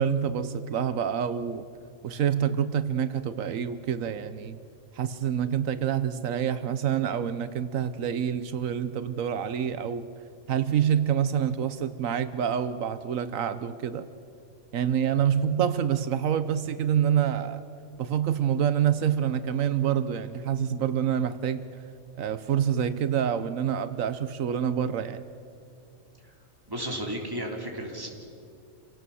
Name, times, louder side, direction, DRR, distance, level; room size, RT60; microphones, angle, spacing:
voice 1, 0.0-1.7 2.0-4.6 4.9-10.1 10.5-14.1 14.7-17.6 18.0-21.7 22.2-25.2, right 9 dB, 85° right, 12 dB, 1.2 m, -27 dB
voice 2, 26.7-28.1, equal, 15° right, 0 dB, 3.1 m, -33 dB
27.5 x 18.0 x 7.0 m, 2.5 s
omnidirectional pair, 1.4 m